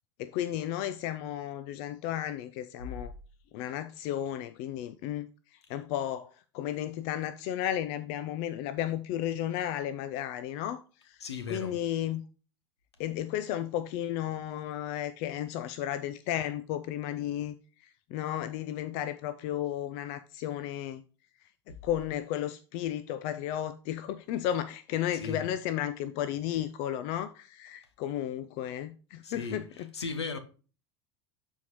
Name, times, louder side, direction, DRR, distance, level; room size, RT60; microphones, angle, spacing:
voice 1, 0.2-3.1 3.5-5.3 5.7-11.2 11.5-12.2 13.0-17.5 17.8-21.0 21.7-29.9, left 11 dB, 50° left, 0.5 m, -33 dB
voice 2, 11.2-11.8 25.1-25.4 29.2-29.6 29.9-30.4, left 4 dB, 75° left, 1.2 m, -36 dB
12.5 x 4.5 x 3.0 m
figure-of-eight pair, 75°, 14 cm